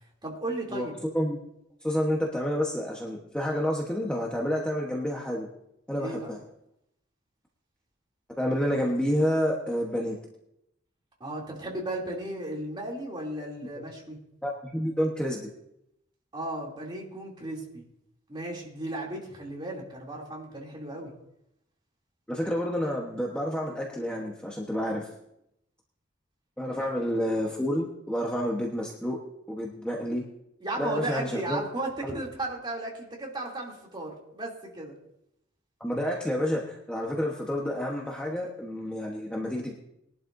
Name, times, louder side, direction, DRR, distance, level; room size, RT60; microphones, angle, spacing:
voice 1, 0.2-0.9 6.0-6.3 11.2-14.2 16.3-17.8 18.3-21.1 26.8-26.9 30.6-35.0, right 1 dB, 25° right, -2 dB, 2.9 m, -35 dB
voice 2, 1.8-5.5 5.9-6.4 8.4-10.2 14.4-15.5 22.3-25.1 26.6-29.2 29.5-30.2 30.8-31.6 32.0-32.2 35.8-39.7, equal, 5° left, -2 dB, 1.2 m, -29 dB
21.0 x 11.5 x 2.7 m, 0.81 s
head